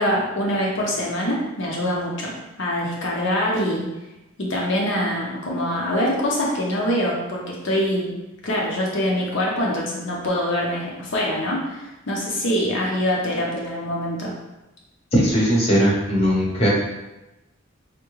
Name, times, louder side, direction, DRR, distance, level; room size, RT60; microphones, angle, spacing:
voice 1, 0.0-3.8 4.4-8.1 8.4-14.3, equal, 60° left, -3 dB, 0.6 m, -24 dB
voice 2, 15.1-16.7, equal, 30° left, -5 dB, 0.8 m, -19 dB
3.5 x 2.1 x 3.0 m, 0.99 s
head